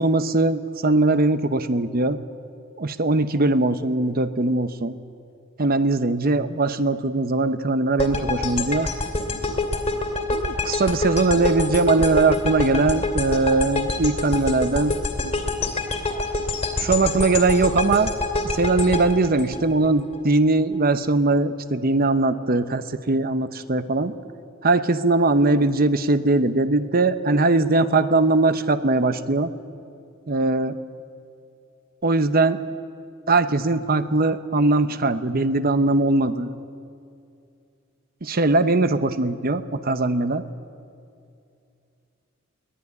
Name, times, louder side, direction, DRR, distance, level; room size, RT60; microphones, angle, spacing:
voice 1, 0.0-2.2 2.8-5.0 5.6-8.9 10.3-15.0 16.8-18.1 18.5-24.1 24.6-29.5 30.3-30.8 32.0-32.6 33.3-36.5 38.2-40.4, right 2 dB, 45° right, 11 dB, 0.9 m, -20 dB
sound 1, 8.0-20.2, left 2 dB, 30° left, 2.5 m, -26 dB
22.5 x 17.5 x 9.6 m, 2.5 s
head